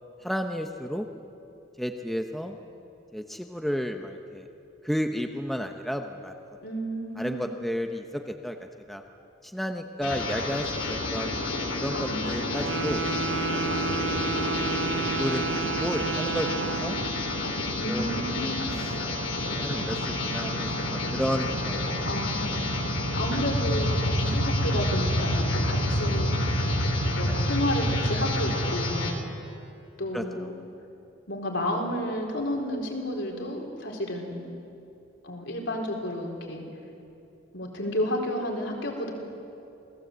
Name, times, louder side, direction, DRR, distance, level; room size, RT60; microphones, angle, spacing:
voice 1, 0.2-1.1 1.8-2.6 3.1-4.4 4.8-6.3 7.2-8.6 8.9-9.0 9.4-11.4 11.8-13.0 13.5-13.9 14.6-17.0 17.5-17.6 17.9-18.1 18.4-18.6 19.5-20.0 20.2-21.8 27.3-27.4 30.1-30.2, equal, ahead, 4 dB, 0.9 m, -32 dB
voice 2, 6.6-7.5 11.9-13.1 14.4-14.8 17.7-18.8 22.0-26.7 27.2-29.1 30.0-30.6 31.3-34.5 35.2-36.6 37.5-39.1, equal, 65° left, 1 dB, 4.5 m, -32 dB
sound 1, 10.0-29.1, left 1 dB, 85° left, 3.8 m, -28 dB
Wind instrument woodwind instrument, 12.6-17.2, right 6 dB, 65° right, 1.0 m, -31 dB
28.0 x 19.5 x 8.1 m, 2.7 s
head